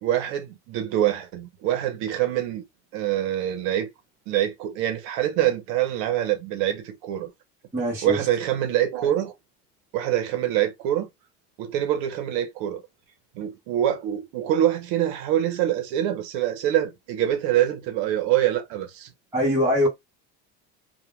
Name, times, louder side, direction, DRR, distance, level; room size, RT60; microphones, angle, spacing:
voice 1, 0.0-2.6 2.9-3.9 4.3-7.3 8.0-9.3 9.9-11.1 11.6-12.8 13.4-19.1, right 12 dB, 75° right, 0.7 m, -25 dB
voice 2, 7.7-8.3 19.3-19.9, equal, 10° right, 0.7 m, -22 dB
2.1 x 2.1 x 3.0 m
cardioid pair, 170°, 30 cm